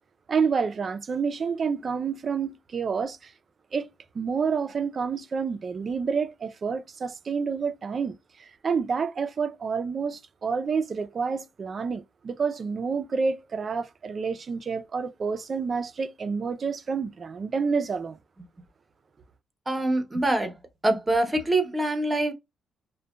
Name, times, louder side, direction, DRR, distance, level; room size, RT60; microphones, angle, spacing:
voice 1, 0.3-3.3 3.7-3.9 4.1-18.2, right 5 dB, 45° right, 0.4 m, -29 dB
voice 2, 19.7-20.5 20.8-22.3, right 1 dB, 20° right, 0.8 m, -24 dB
2.7 x 2.1 x 2.2 m
cardioid pair, 90°, 0 cm